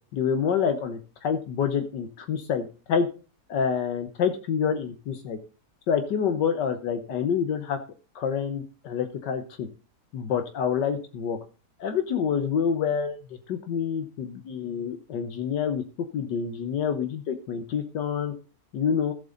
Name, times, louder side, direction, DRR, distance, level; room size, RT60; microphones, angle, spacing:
voice 1, 0.1-3.1 3.5-5.4 5.9-7.8 8.2-9.7 10.1-11.4 11.8-15.8 16.1-18.3 18.7-19.1, left 7 dB, 80° left, 7 dB, 1.7 m, -27 dB
14.0 x 7.6 x 3.9 m, 0.34 s
omnidirectional pair, 1.9 m